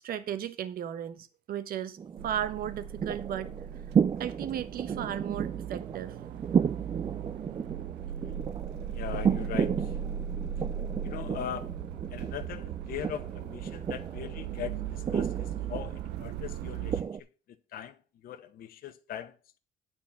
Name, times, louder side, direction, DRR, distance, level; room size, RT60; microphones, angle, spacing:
voice 1, 0.0-2.0 2.2-3.5 4.2-6.1, right 10 dB, 60° right, 1.2 m, -35 dB
sound 1, 2.0-17.2, right 7 dB, 30° right, 0.4 m, -33 dB
sound 2, 2.2-17.0, right 9 dB, 85° right, 0.6 m, -38 dB
voice 2, 8.9-10.0 11.0-11.7 12.1-17.1 17.5-18.0 18.2-19.6, left 10 dB, 60° left, 1.0 m, -40 dB
9.9 x 4.4 x 7.2 m
cardioid pair, 110°, 17 cm